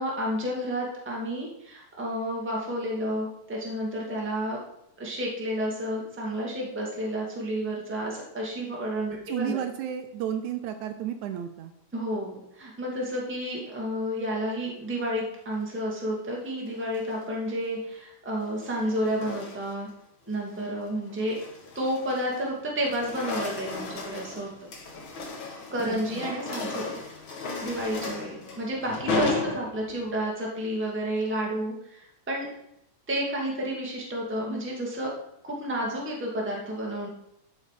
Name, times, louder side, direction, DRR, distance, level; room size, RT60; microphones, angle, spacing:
voice 1, 0.0-4.6 5.0-9.6 11.9-19.9 20.3-21.4 21.7-24.7 25.7-27.0 27.3-32.5 33.1-35.1 35.4-37.1, equal, 5° right, -3 dB, 1.3 m, -31 dB
voice 2, 9.3-11.7 25.9-26.3, right 10 dB, 80° right, 8 dB, 1.9 m, -33 dB
sound 1, 16.7-17.2 18.3-19.9 20.3-20.6 21.1-22.5 22.8-30.1, left 3 dB, 50° left, 1.8 m, -35 dB
12.0 x 5.4 x 4.9 m, 0.78 s
omnidirectional pair, 3.6 m